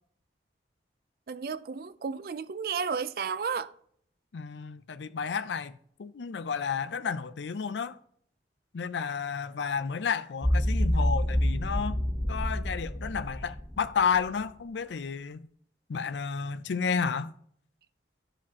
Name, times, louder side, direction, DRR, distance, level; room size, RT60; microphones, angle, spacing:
voice 1, 1.3-3.7, right 6 dB, 55° right, 0.4 m, -33 dB
voice 2, 4.3-8.0 8.7-12.0 12.3-15.5 15.9-17.3, left 6 dB, 90° left, 0.5 m, -31 dB
sound 1, 10.4-14.3, equal, 5° left, 0.6 m, -28 dB
12.5 x 5.0 x 2.8 m
head